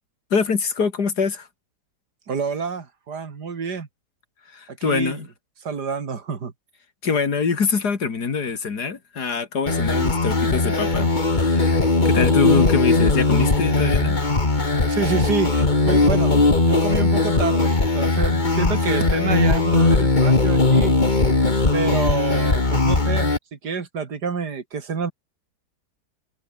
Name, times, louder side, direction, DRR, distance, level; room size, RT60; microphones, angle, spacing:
voice 1, 0.3-1.5 4.5-5.3 7.0-11.8 12.0-14.2, left 5 dB, 65° left, 2.9 m, -24 dB
voice 2, 2.3-3.9 4.7-5.2 5.6-6.5 14.9-21.0 21.7-25.1, right 5 dB, 70° right, 2.8 m, -28 dB
sound 1, 9.7-23.4, left 3 dB, 25° left, 2.3 m, -19 dB
omnidirectional pair, 1.8 m